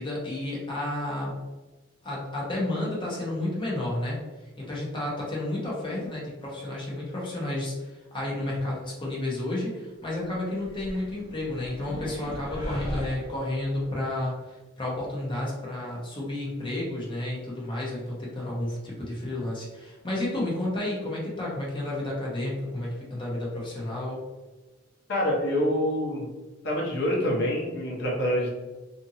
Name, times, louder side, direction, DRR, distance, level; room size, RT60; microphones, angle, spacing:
voice 1, 0.0-1.3 2.0-4.2 4.6-24.2, left 1 dB, 25° left, -4 dB, 0.7 m, -31 dB
sound 1, 10.6-13.9, equal, 15° right, 1.0 m, -38 dB
voice 2, 25.1-26.3 26.6-28.6, equal, 60° left, -3 dB, 0.9 m, -26 dB
2.6 x 2.5 x 2.7 m, 1.2 s
head